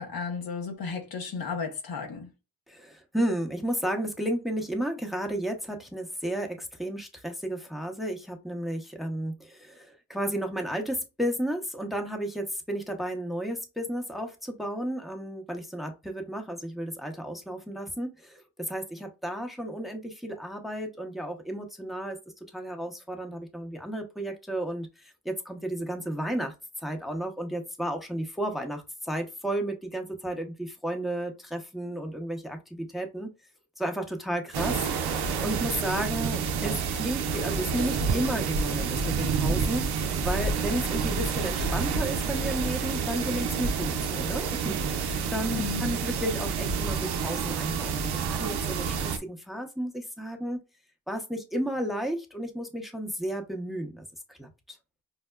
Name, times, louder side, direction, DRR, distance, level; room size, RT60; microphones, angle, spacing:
voice 1, 0.0-2.3 45.5-46.0, left 5 dB, 70° left, 0.9 m, -34 dB
voice 2, 2.7-22.2 22.5-26.5 26.8-33.3 33.8-34.8 35.1-50.6 51.1-54.0 54.3-54.5, right 1 dB, ahead, 0.7 m, -33 dB
sound 1, 34.5-49.2, right 5 dB, 85° right, 0.5 m, -29 dB
5.5 x 2.0 x 2.2 m
cardioid pair, 55°, 37 cm